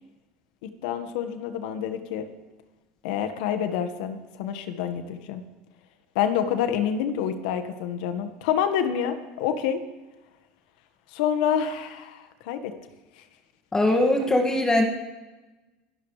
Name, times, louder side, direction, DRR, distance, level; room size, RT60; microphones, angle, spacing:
voice 1, 0.8-2.3 3.0-5.4 6.1-9.8 11.1-12.7, left 8 dB, 75° left, 8 dB, 1.6 m, -27 dB
voice 2, 13.7-14.8, left 1 dB, 15° left, 2 dB, 2.1 m, -21 dB
24.5 x 12.0 x 3.4 m, 1.1 s
supercardioid pair, 110°, 4 cm